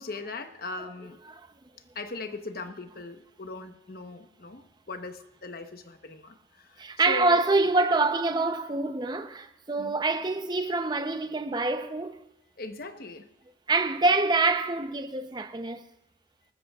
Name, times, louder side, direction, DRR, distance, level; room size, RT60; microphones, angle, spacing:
voice 1, 0.0-1.2 1.9-7.6 9.8-9.9 12.6-13.3, left 3 dB, 55° left, 1.0 m, -39 dB
voice 2, 6.8-12.2 13.7-15.8, right 3 dB, 25° right, 0.7 m, -26 dB
27.5 x 13.5 x 2.4 m
head